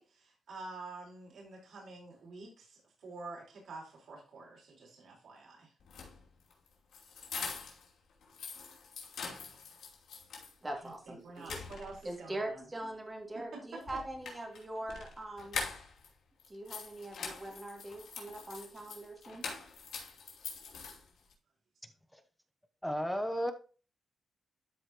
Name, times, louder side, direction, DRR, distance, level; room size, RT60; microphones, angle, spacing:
voice 1, 0.0-5.7 10.8-12.7 13.5-13.8, right 3 dB, 70° right, -2 dB, 4.3 m, -48 dB
sound 1, 5.8-7.9 8.2-10.5 10.9-11.0 11.4-12.2 13.8-16.1 16.4-21.3, left 5 dB, 85° left, 2.6 m, -44 dB
voice 2, 10.6-11.6 12.0-15.6 16.5-19.5, right 1 dB, 20° right, 1 dB, 2.3 m, -42 dB
voice 3, 22.8-23.5, equal, ahead, 7 dB, 0.8 m, -33 dB
12.5 x 4.9 x 2.9 m, 0.37 s
wide cardioid pair, 140°, 0 cm